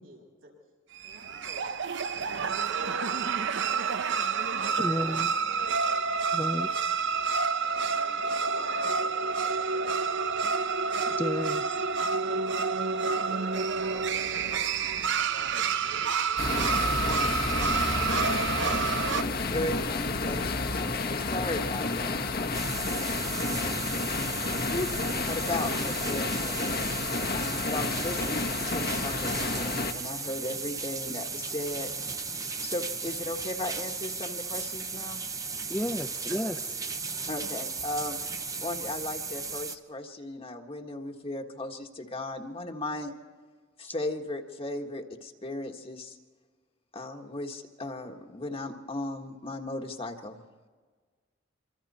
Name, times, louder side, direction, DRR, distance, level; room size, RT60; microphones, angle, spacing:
voice 1, 0.0-0.5 1.0-1.7 2.7-4.0 4.6-5.1 7.3-10.3 12.6-14.8 35.7-36.4, right 2 dB, 85° right, -2 dB, 7.8 m, -49 dB
sound 1, 1.0-19.2, right 5 dB, 65° right, 0.8 m, -29 dB
voice 2, 4.8-5.3 6.3-6.7 11.1-11.6 35.7-36.5 43.8-43.9, left 1 dB, 10° left, 9 dB, 0.6 m, -32 dB
sound 2, 16.4-29.9, left 3 dB, 50° left, 1.5 m, -30 dB
voice 3, 19.5-23.8 24.7-26.6 27.3-31.9 32.6-35.2 37.3-43.1 43.8-46.2 46.9-50.4, left 2 dB, 30° left, 3 dB, 1.6 m, -36 dB
sound 3, 22.5-39.8, right 4 dB, 20° right, 0.9 m, -36 dB
26.5 x 25.5 x 4.3 m, 1.5 s
head